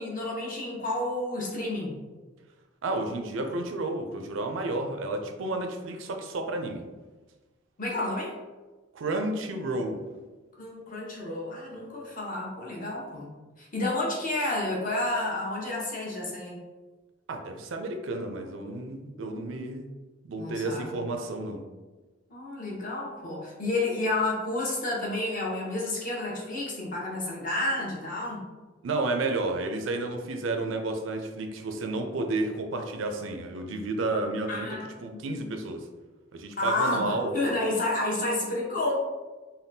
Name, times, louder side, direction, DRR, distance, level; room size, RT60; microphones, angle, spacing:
voice 1, 0.0-1.9 7.8-8.3 10.6-13.3 13.6-16.6 20.4-21.0 22.3-28.4 34.5-34.9 35.1-35.5 36.6-39.0, left 2 dB, 45° left, -4 dB, 0.8 m, -30 dB
voice 2, 2.8-6.8 8.9-10.0 17.3-19.9 20.2-21.6 28.8-35.8 36.3-37.4, right 2 dB, 90° right, 5 dB, 0.4 m, -31 dB
3.5 x 2.2 x 2.7 m, 1.2 s
head